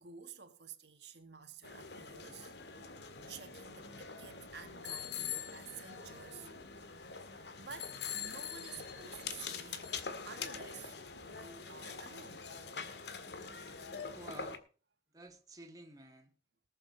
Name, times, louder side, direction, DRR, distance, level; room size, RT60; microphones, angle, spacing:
voice 1, 0.0-2.5 3.3-6.5 7.2-11.0 11.3-12.6, right 6 dB, 75° right, 1.7 m, -52 dB
sound 1, 1.6-14.6, left 6 dB, 70° left, 1.9 m, -44 dB
voice 2, 13.3-13.6 14.1-14.6 15.1-16.3, right 1 dB, 20° right, 2.1 m, -52 dB
19.5 x 7.7 x 4.0 m
head